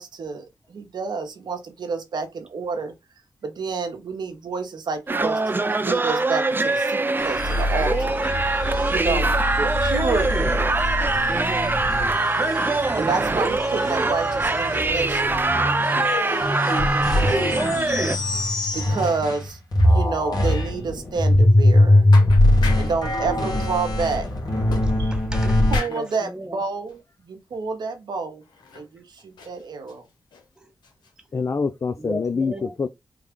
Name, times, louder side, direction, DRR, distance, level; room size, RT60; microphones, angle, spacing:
voice 1, 0.0-2.9 3.4-8.2 8.9-10.5 12.9-15.8 18.7-19.6 19.8-22.1 22.7-24.3 25.0-25.2 25.4-28.4 28.7-30.0, right 4 dB, 75° right, 0.9 m, -29 dB
sound 1, 5.1-18.2, right 3 dB, 30° right, 0.5 m, -23 dB
sound 2, 7.2-19.5 19.7-25.8, left 1 dB, 65° left, 1.5 m, -22 dB
voice 2, 8.7-9.1 11.3-11.7 16.6-17.4 24.8-25.6 25.9-26.6 30.6-30.7 32.0-32.7, equal, 10° right, 0.9 m, -35 dB
sound 3, 18.5-18.9 19.2-19.3 19.8-19.9 20.4-20.5 20.9-21.1 21.8-21.9 22.1-23.0 24.7-25.4 25.7-26.2 26.9-27.0 27.5-27.6 28.4-28.9 29.2-30.5 30.8-31.1, left 4 dB, 85° left, 0.9 m, -38 dB
voice 3, 31.3-32.9, left 5 dB, 45° left, 0.3 m, -25 dB
3.3 x 2.4 x 3.5 m
cardioid pair, 45°, 7 cm